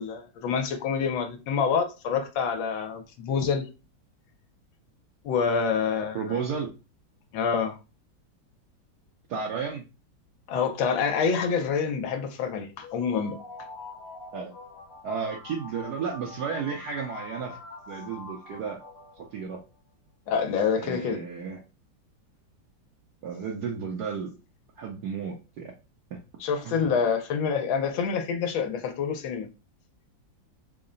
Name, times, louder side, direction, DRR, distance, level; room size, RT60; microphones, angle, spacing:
voice 1, 0.0-3.7 5.2-6.4 7.3-7.8 10.5-13.4 20.3-21.2 26.4-29.5, left 6 dB, 85° left, 1.5 m, -27 dB
voice 2, 6.1-6.7 9.3-9.8 14.3-14.5 15.0-17.6 17.9-18.8 19.3-19.6 20.8-21.6 23.2-24.3 24.8-25.7 26.1-26.2 26.6-26.9, right 6 dB, 65° right, 1.2 m, -33 dB
sound 1, 12.8-19.6, left 3 dB, 65° left, 1.4 m, -44 dB
3.8 x 2.1 x 3.7 m
omnidirectional pair, 2.1 m